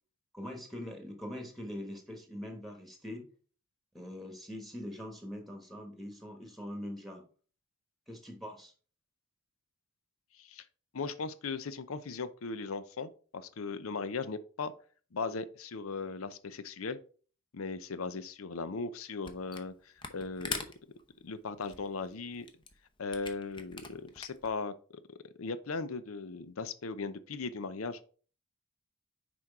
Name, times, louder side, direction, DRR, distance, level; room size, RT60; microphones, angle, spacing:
voice 1, 0.3-3.3 3.9-7.2 8.1-8.7, left 1 dB, ahead, 4 dB, 1.3 m, -43 dB
voice 2, 10.3-10.6 10.9-14.7 15.1-17.0 17.5-20.7 21.2-22.5 23.0-24.7 25.1-28.0, left 4 dB, 80° left, 14 dB, 0.6 m, -38 dB
Camera, 19.2-19.7 20.0-24.5, left 4 dB, 25° left, 0.8 m, -42 dB
6.2 x 4.5 x 4.6 m, 0.40 s
head